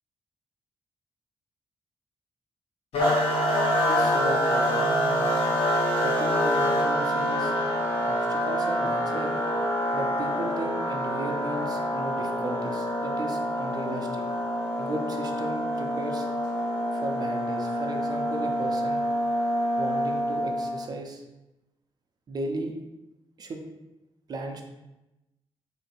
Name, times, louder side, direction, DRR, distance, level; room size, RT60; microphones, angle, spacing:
Wind instrument woodwind instrument, 2.9-8.0, left 2 dB, 75° left, 0.9 m, -33 dB
sound 1, 3.0-20.8, equal, 55° left, 1.3 m, -26 dB
voice 1, 3.9-5.3 6.0-7.5 8.0-9.4 9.9-14.2 14.8-16.3 16.9-19.0 19.8-21.2 22.3-22.7 23.4-23.6 24.3-24.6, right 2 dB, 40° right, 3 dB, 0.6 m, -35 dB
3.2 x 2.7 x 4.3 m, 0.98 s
wide cardioid pair, 140°, 10 cm